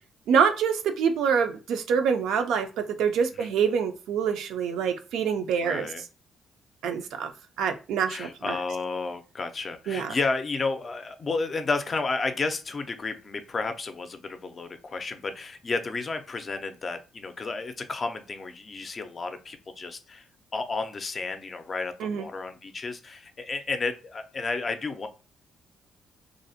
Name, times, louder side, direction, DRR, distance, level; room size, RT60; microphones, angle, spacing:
voice 1, 0.3-5.9 6.8-7.3 7.6-8.6 9.9-10.1 22.0-22.3, right 7 dB, 85° right, 0.4 m, -26 dB
voice 2, 5.6-6.0 8.1-20.3 20.5-25.1, left 3 dB, 40° left, 0.4 m, -32 dB
2.5 x 2.0 x 2.7 m
cardioid pair, 90°, 0 cm